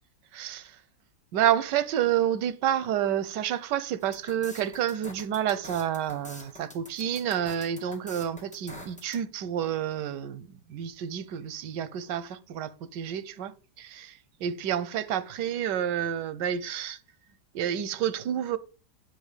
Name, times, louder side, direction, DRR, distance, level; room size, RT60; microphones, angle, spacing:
voice 1, 0.3-0.8 1.3-17.0 17.5-18.6, right 10 dB, 90° right, 1.4 m, -29 dB
sound 1, 4.0-9.2, left 1 dB, 5° left, 1.6 m, -46 dB
9.3 x 7.6 x 5.1 m
omnidirectional pair, 1.8 m